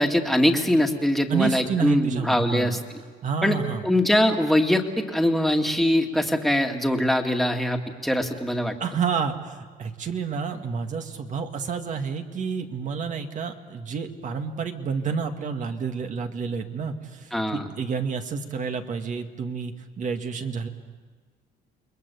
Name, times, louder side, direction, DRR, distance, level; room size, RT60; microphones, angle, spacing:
voice 1, 0.0-2.8 3.4-3.6 3.8-8.7 17.3-17.6, left 1 dB, ahead, 3 dB, 2.2 m, -22 dB
voice 2, 1.3-2.8 3.2-3.9 8.8-20.7, right 6 dB, 45° right, 5 dB, 2.1 m, -29 dB
29.0 x 21.5 x 7.1 m, 1.5 s
cardioid pair, 110°, 17 cm